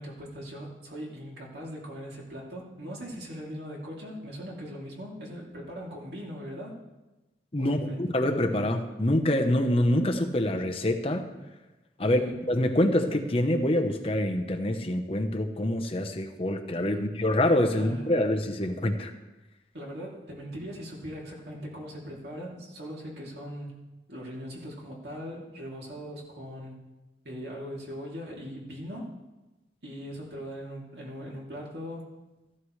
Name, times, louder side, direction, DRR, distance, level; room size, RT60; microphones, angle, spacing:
voice 1, 0.0-6.8 7.6-8.1 12.0-12.3 16.9-17.0 17.7-18.2 19.7-23.8 24.1-26.8 27.2-29.1 29.8-32.1, equal, 70° right, -3 dB, 2.9 m, -40 dB
voice 2, 7.5-11.3 12.0-12.2 12.5-19.1, left 1 dB, 35° left, 4 dB, 0.9 m, -26 dB
14.5 x 13.0 x 3.2 m, 1.1 s
head